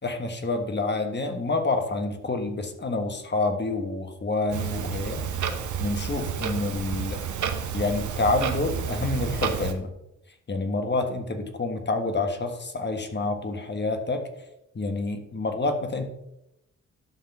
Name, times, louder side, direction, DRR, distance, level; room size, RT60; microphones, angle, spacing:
voice 1, 0.0-5.2 5.8-7.2 7.7-9.9 10.5-14.3 14.7-16.1, left 3 dB, 35° left, 6 dB, 1.4 m, -28 dB
Clock, 4.5-9.7, right 7 dB, 75° right, 1.1 m, -30 dB
11.5 x 3.8 x 7.2 m, 0.88 s
cardioid pair, 95°, 30 cm